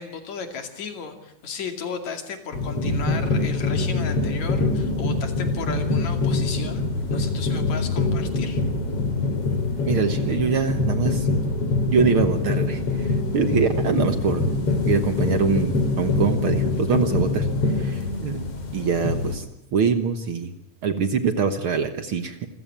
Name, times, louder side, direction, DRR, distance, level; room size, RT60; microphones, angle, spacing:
voice 1, 0.0-8.6, left 6 dB, 70° left, 6 dB, 3.8 m, -35 dB
sound 1, 2.5-19.4, left 3 dB, 50° left, 4.3 m, -24 dB
voice 2, 9.9-11.3 11.9-14.4 14.9-17.5 17.8-18.5 18.7-19.5 19.7-20.5 20.8-22.4, right 6 dB, 55° right, 9 dB, 1.8 m, -24 dB
27.0 x 16.0 x 8.9 m, 0.79 s
omnidirectional pair, 3.4 m